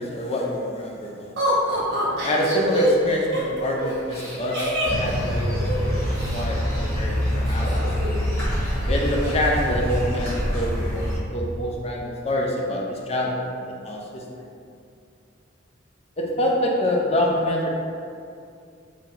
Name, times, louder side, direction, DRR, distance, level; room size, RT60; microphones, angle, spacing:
voice 1, 0.0-1.3 2.2-5.5 6.0-7.8 8.9-14.0 16.2-17.7, left 1 dB, 30° left, -2 dB, 0.5 m, -26 dB
Laughter, 1.4-6.4 7.5-8.3 8.6-8.7 9.0-9.5, right 1 dB, 55° right, 1.1 m, -26 dB
sound 1, 4.8-11.2, equal, 15° left, 1.5 m, -25 dB
3.2 x 2.8 x 3.9 m, 2.4 s
head